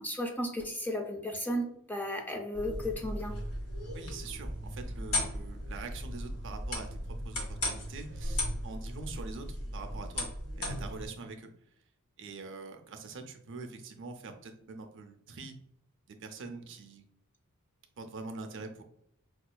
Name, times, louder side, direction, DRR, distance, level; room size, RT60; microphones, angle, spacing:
voice 1, 0.0-3.3, left 1 dB, 10° left, 2 dB, 0.4 m, -34 dB
sound 1, 2.5-11.1, left 1 dB, 75° left, 1.3 m, -36 dB
voice 2, 3.9-11.5 12.2-15.6 16.1-17.1 18.0-18.8, right 3 dB, 55° right, 5 dB, 0.5 m, -44 dB
5.1 x 2.4 x 2.2 m, 0.71 s
head